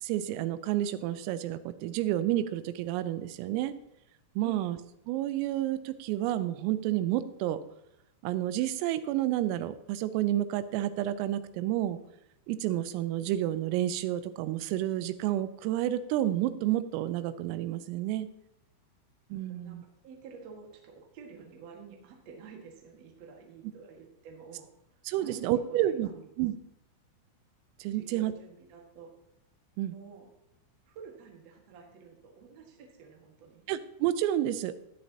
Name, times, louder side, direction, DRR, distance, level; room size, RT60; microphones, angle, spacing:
voice 1, 0.0-3.7 4.4-4.8 5.1-7.6 8.2-12.0 12.5-18.3 19.3-19.8 25.1-26.1 26.4-26.6 27.8-28.3 29.8-29.9 33.7-34.7, right 13 dB, 90° right, 12 dB, 3.3 m, -30 dB
voice 2, 19.5-25.8 26.0-26.3 27.9-29.1 29.9-30.3 30.8-33.6, right 5 dB, 70° right, 0 dB, 1.6 m, -50 dB
14.0 x 9.7 x 2.8 m, 0.83 s
omnidirectional pair, 5.9 m